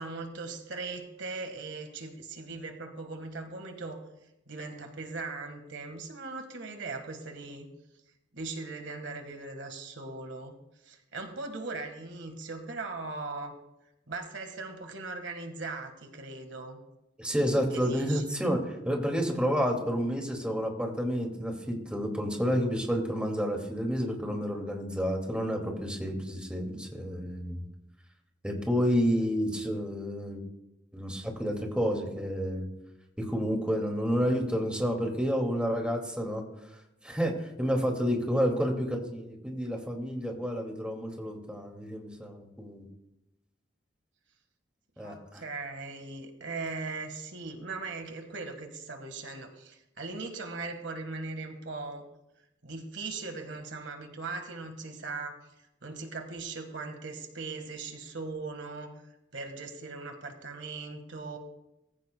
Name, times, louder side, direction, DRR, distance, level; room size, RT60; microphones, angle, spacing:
voice 1, 0.0-4.0 4.5-7.7 8.3-10.6 10.8-13.5 14.1-16.8 17.7-18.3 28.9-29.0 45.0-52.1 52.6-55.4 55.8-58.9 59.3-61.4, right 3 dB, 70° right, 5 dB, 1.7 m, -39 dB
voice 2, 17.2-27.6 28.4-30.4 30.9-32.7 33.2-36.4 37.0-42.9 45.0-45.4, equal, 5° right, 1 dB, 2.3 m, -30 dB
19.5 x 15.5 x 2.3 m, 0.89 s
head